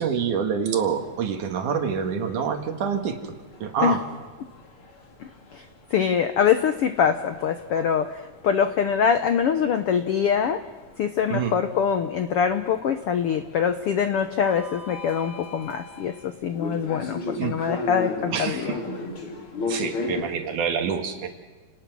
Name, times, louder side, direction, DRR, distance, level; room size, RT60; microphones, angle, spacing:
voice 1, 0.0-3.2 3.6-4.0 11.3-11.5 17.4-17.5 18.3-18.6 19.7-21.3, right 7 dB, 70° right, 5 dB, 3.2 m, -26 dB
sound 1, 0.8-20.2, left 3 dB, 40° left, 3.3 m, -38 dB
voice 2, 5.9-10.6 11.0-18.8, left 7 dB, 90° left, 9 dB, 1.2 m, -24 dB
29.5 x 19.0 x 6.2 m, 1.3 s
omnidirectional pair, 3.9 m